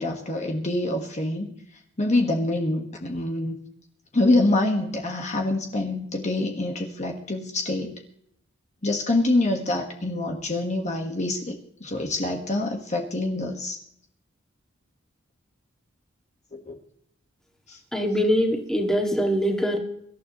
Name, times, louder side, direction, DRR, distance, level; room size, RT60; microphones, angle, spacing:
voice 1, 0.0-1.5 2.0-3.6 4.1-8.0 8.8-13.8 16.7-16.8 17.7-17.8, left 2 dB, 35° left, 2 dB, 1.5 m, -25 dB
voice 2, 17.9-19.8, equal, 5° left, 1 dB, 2.0 m, -23 dB
24.5 x 12.0 x 3.0 m, 0.69 s
head